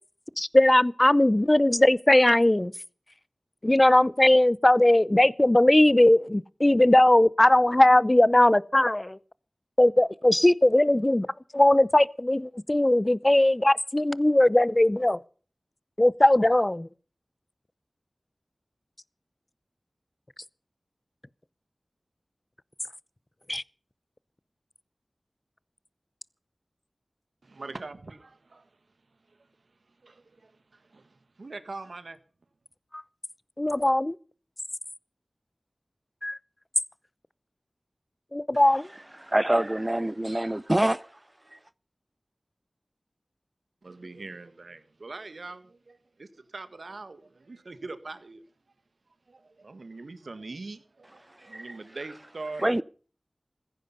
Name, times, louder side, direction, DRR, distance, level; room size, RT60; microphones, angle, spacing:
voice 1, 0.4-2.7 3.6-9.1 9.8-11.3 11.5-15.2 16.0-16.9 23.5-23.6 33.6-34.1 36.2-36.4 38.3-38.8, left 1 dB, 30° left, 0.6 m, -19 dB
voice 2, 27.5-28.6 30.0-30.4 30.9-32.2 43.8-46.3 46.5-48.4 49.3-52.7, right 3 dB, 85° right, 1.6 m, -42 dB
voice 3, 39.3-41.1 52.6-52.8, right 1 dB, 25° right, 0.7 m, -24 dB
15.5 x 15.0 x 5.5 m
wide cardioid pair, 40°, 0 cm